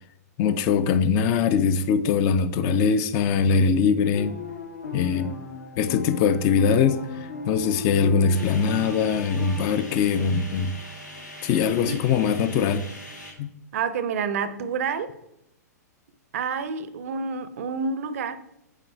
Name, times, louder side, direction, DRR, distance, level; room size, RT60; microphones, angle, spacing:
voice 1, 0.4-4.3 4.9-5.3 5.8-7.0 7.5-10.8 11.4-12.9 13.4-13.5, left 6 dB, 35° left, 0.5 m, -22 dB
sound 1, 4.1-9.7, left 4 dB, 70° left, 1.1 m, -37 dB
sound 2, 8.3-13.3, left 1 dB, 90° left, 1.8 m, -42 dB
voice 2, 13.7-15.1 16.3-18.4, right 5 dB, 55° right, 0.6 m, -28 dB
8.3 x 3.8 x 3.3 m
figure-of-eight pair, 110°, 9 cm